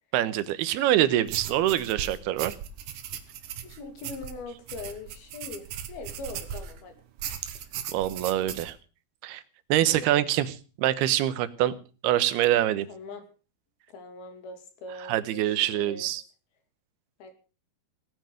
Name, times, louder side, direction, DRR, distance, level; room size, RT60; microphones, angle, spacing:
voice 1, 0.1-2.5 7.9-8.8 9.2-9.4 9.7-11.7 12.0-12.9 15.1-16.2, right 13 dB, 90° right, 14 dB, 2.9 m, -25 dB
sound 1, 1.3-6.8 7.2-8.7, right 9 dB, 65° right, 2.6 m, -38 dB
voice 2, 3.6-6.9 9.8-10.1 12.9-13.3 13.9-16.1 17.2-17.3, left 3 dB, 70° left, 7 dB, 4.3 m, -41 dB
17.5 x 9.3 x 6.4 m, 0.37 s
omnidirectional pair, 4.5 m